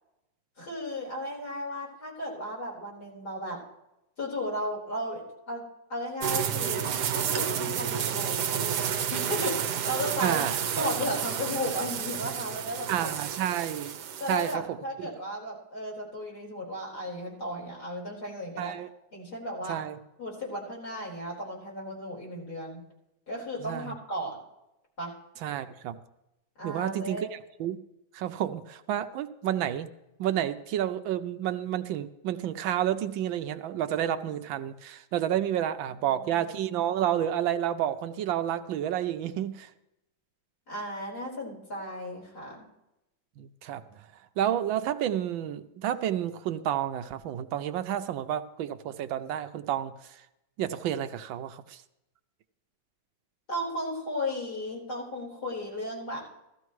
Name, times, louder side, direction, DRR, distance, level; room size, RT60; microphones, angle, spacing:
voice 1, 0.6-3.6 4.2-5.6 5.9-8.4 9.1-10.4 10.8-13.1 13.4-13.5 14.2-18.7 19.1-19.8 20.2-22.8 23.3-24.4 25.0-25.1 26.6-27.3 36.0-36.4 40.7-42.7 53.5-56.2, equal, 50° left, -3 dB, 5.0 m, -35 dB
sound 1, 6.2-14.6, right 8 dB, 65° right, 1.3 m, -31 dB
voice 2, 10.2-10.9 12.9-14.0 14.3-15.1 18.6-18.9 19.7-20.0 23.6-24.0 25.4-26.0 26.6-27.8 28.1-29.9 30.2-39.7 43.4-43.8 44.4-49.9 50.6-51.8, right 10 dB, 80° right, 10 dB, 1.4 m, -30 dB
16.0 x 14.0 x 3.1 m, 0.89 s
omnidirectional pair, 2.2 m